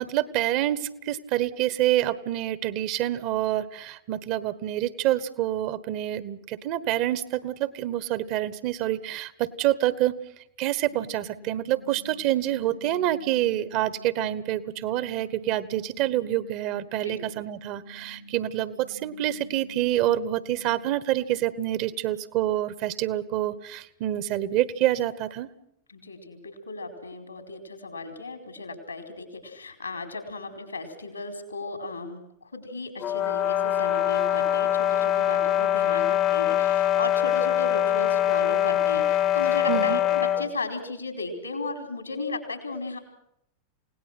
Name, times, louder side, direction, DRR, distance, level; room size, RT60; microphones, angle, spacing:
voice 1, 0.0-10.2 10.6-25.5 39.7-40.0, right 13 dB, 45° right, 17 dB, 1.3 m, -27 dB
sound 1, 10.8-20.9, equal, 80° right, 4.0 m, -48 dB
voice 2, 25.9-43.0, left 3 dB, 80° left, 6 dB, 4.4 m, -35 dB
sound 2, 33.0-40.5, left 11 dB, 35° left, 1.2 m, -23 dB
28.5 x 18.5 x 6.1 m, 0.76 s
figure-of-eight pair, 90°, 0 cm